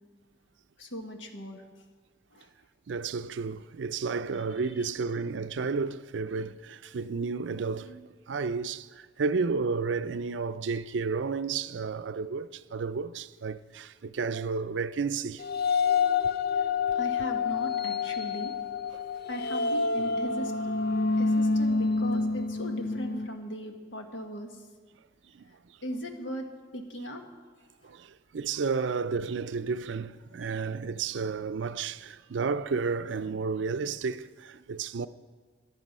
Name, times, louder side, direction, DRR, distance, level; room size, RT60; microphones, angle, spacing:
voice 1, 0.8-1.6 2.3-2.5 16.5-16.7 16.9-18.5 19.3-20.5 21.2-24.7 25.8-26.5 26.7-27.2 27.8-27.9 30.4-30.5, equal, 80° left, 1.6 m, -38 dB
voice 2, 2.9-15.4 16.9-17.0 18.9-19.0 21.0-21.2 25.3-25.4 27.8-35.1, right 5 dB, 75° right, 0.5 m, -32 dB
sound 1, 15.4-23.3, left 4 dB, 55° left, 0.4 m, -28 dB
15.0 x 10.5 x 5.4 m
head